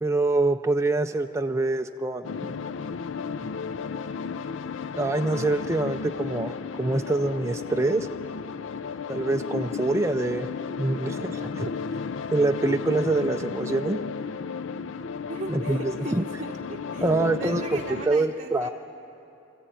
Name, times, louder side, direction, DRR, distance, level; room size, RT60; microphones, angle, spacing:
voice 1, 0.0-2.5 5.0-8.1 9.1-10.5 10.8-11.7 12.3-14.0 15.5-16.3 17.0-17.8 18.0-18.7, right 2 dB, 15° right, 5 dB, 0.4 m, -25 dB
sound 1, 2.2-18.0, left 5 dB, 65° left, 0.5 m, -33 dB
voice 2, 15.3-17.1 17.3-18.7, right 2 dB, 40° right, 0 dB, 1.0 m, -37 dB
25.0 x 14.5 x 9.0 m, 2.9 s
head